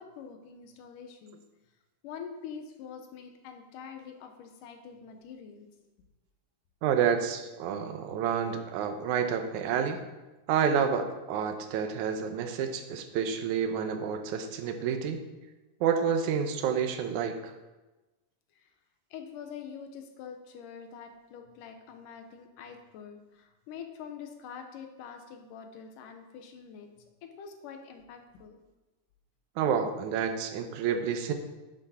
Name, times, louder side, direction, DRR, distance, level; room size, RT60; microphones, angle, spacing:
voice 1, 0.0-1.4 2.0-5.7 18.6-18.7 19.1-28.6, left 7 dB, 75° left, 5 dB, 2.5 m, -45 dB
voice 2, 6.8-10.0 10.5-15.2 15.8-17.5 29.6-31.3, right 7 dB, 70° right, 6 dB, 2.2 m, -29 dB
11.0 x 7.8 x 4.3 m, 1.1 s
omnidirectional pair, 3.8 m